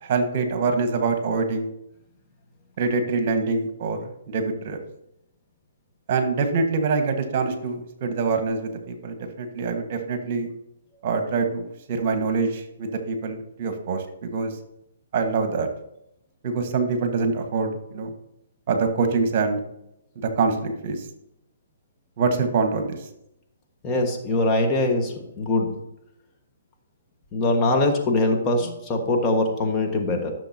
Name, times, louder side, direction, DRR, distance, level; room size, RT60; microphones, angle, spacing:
voice 1, 0.0-1.7 2.8-4.8 6.1-10.5 11.0-14.6 15.1-15.7 16.4-18.1 18.7-19.6 20.1-21.1 22.2-23.1, right 4 dB, 45° right, 6 dB, 1.4 m, -25 dB
voice 2, 23.8-25.8 27.3-30.3, left 2 dB, 20° left, 1 dB, 1.5 m, -22 dB
14.5 x 6.6 x 2.8 m, 0.82 s
hypercardioid pair, 135°, 0 cm